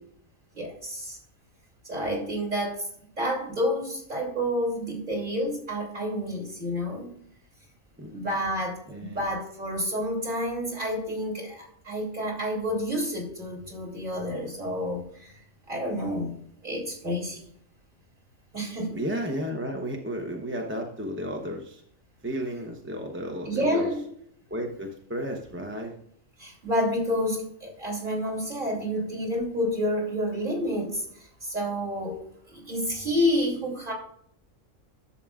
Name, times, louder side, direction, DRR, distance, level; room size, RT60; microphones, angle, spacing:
voice 1, 0.5-1.2 1.8-2.9 3.2-7.1 8.1-15.3 15.7-17.5 18.5-19.0 23.5-24.0 26.4-32.2 32.5-33.9, equal, 35° right, -2 dB, 2.7 m, -29 dB
voice 2, 8.9-9.2 18.9-21.8 22.2-23.9 24.5-25.9, equal, 10° right, 2 dB, 0.6 m, -33 dB
11.0 x 7.3 x 2.4 m, 0.65 s
omnidirectional pair, 1.5 m